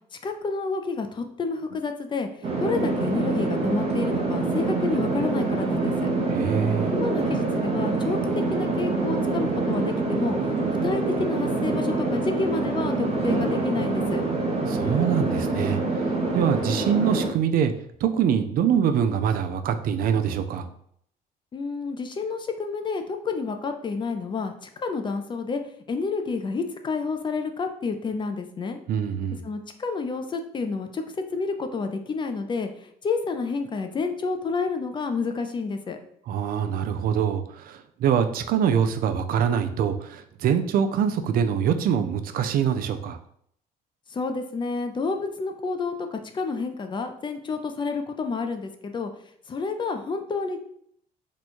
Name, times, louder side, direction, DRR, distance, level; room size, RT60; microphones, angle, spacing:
voice 1, 0.2-2.3 2.6-6.1 6.9-8.2 8.5-10.4 10.8-14.2 21.5-25.6 25.9-28.8 29.4-31.0 31.3-32.7 33.0-36.0 44.1-49.1 49.5-50.6, left 4 dB, 30° left, 6 dB, 0.4 m, -29 dB
sound 1, 2.4-17.3, right 3 dB, 35° right, 0.8 m, -25 dB
voice 2, 6.3-6.9 14.7-15.8 16.3-17.7 18.0-20.7 28.9-29.4 36.3-43.2, right 8 dB, 60° right, 8 dB, 0.4 m, -24 dB
3.0 x 2.2 x 4.2 m, 0.66 s
cardioid pair, 110°, 17 cm